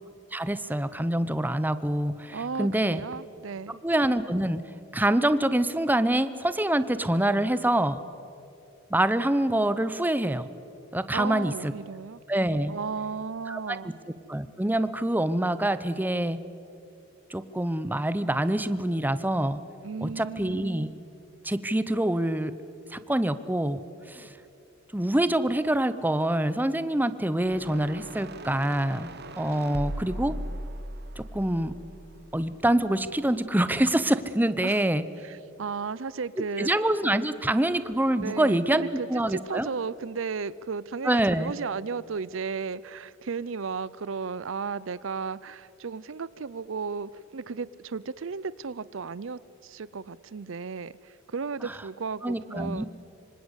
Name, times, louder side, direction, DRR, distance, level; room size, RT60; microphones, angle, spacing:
voice 1, 0.3-3.0 3.8-4.6 4.9-8.0 8.9-10.5 10.9-11.7 12.3-12.7 13.5-13.9 14.3-16.4 17.3-19.6 20.0-20.9 21.4-22.5 22.9-24.3 24.9-30.4 31.2-31.7 32.3-35.0 36.6-38.8 39.1-39.7 41.0-41.5 51.6-51.7 52.2-52.9, right 1 dB, 10° right, 13 dB, 0.8 m, -26 dB
voice 2, 2.3-3.8 11.1-12.2 12.7-13.9 19.8-20.7 34.6-34.8 35.2-36.7 38.2-52.9, right 5 dB, 70° right, 19 dB, 0.6 m, -34 dB
sound 1, 27.4-32.7, right 1 dB, 55° right, 1.2 m, -39 dB
25.5 x 25.5 x 8.2 m, 2.8 s
head